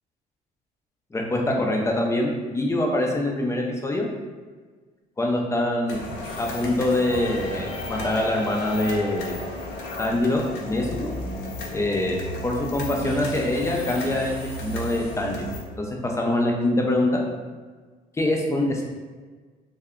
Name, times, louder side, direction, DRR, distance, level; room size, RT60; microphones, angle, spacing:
voice 1, 1.1-4.1 5.2-6.1 6.4-9.4 10.0-11.1 11.7-15.4 15.8-17.2 18.2-18.8, left 1 dB, 15° left, 0 dB, 0.5 m, -24 dB
sound 1, 5.9-15.6, left 1 dB, 85° left, 0.7 m, -33 dB
2.7 x 2.2 x 3.6 m, 1.4 s
cardioid pair, 110°, 17 cm